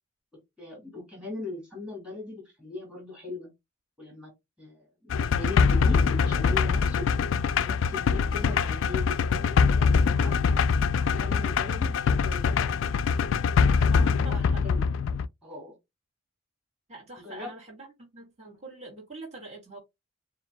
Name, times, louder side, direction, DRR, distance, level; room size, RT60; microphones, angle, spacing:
voice 1, 0.6-3.5 4.0-4.3 4.6-7.1 7.6-10.3 10.9-13.0 13.7-14.8 15.4-15.7 17.2-17.5, left 2 dB, 5° right, 2.9 m, -39 dB
sound 1, 5.1-15.3, left 5 dB, 75° left, 0.3 m, -23 dB
voice 2, 14.2-14.6 16.9-17.9 18.1-19.8, right 3 dB, 30° right, 2.0 m, -44 dB
7.0 x 2.5 x 2.2 m
head